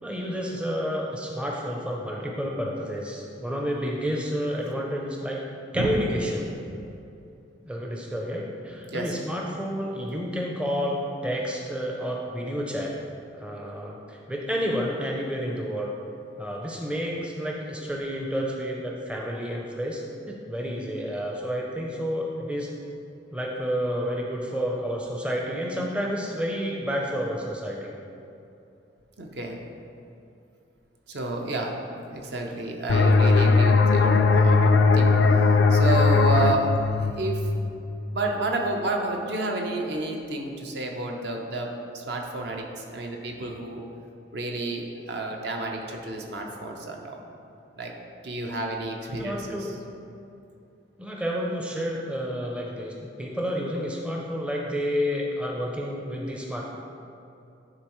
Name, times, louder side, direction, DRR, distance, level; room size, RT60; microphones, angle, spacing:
voice 1, 0.0-5.4 5.7-6.5 7.6-12.9 13.4-15.9 16.4-22.7 23.3-27.9 49.1-49.7 51.0-56.7, equal, 5° right, -2 dB, 0.5 m, -30 dB
voice 2, 29.2-29.6 31.1-31.8 32.1-35.1 35.7-36.7 37.0-37.4 38.1-43.8 44.3-47.2 47.8-47.9 48.2-49.7, right 2 dB, 60° right, 1 dB, 0.7 m, -30 dB
sound 1, 32.9-38.3, left 4 dB, 70° left, 0.4 m, -19 dB
9.8 x 3.9 x 3.0 m, 2.7 s
head